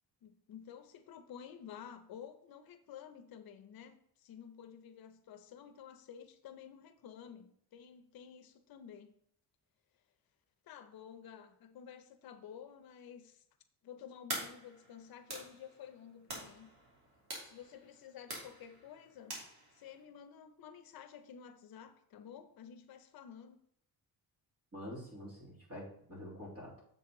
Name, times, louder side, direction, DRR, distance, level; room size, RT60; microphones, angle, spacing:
voice 1, 0.2-9.1 10.6-13.4 13.8-16.7 17.4-19.4 19.7-23.6, left 8 dB, 65° left, 0.7 m, -52 dB
sound 1, 14.3-20.0, right 1 dB, 70° right, 2.8 m, -47 dB
voice 2, 24.7-26.8, equal, 35° right, 3.1 m, -47 dB
7.4 x 6.3 x 3.8 m
cardioid pair, 165°, 39 cm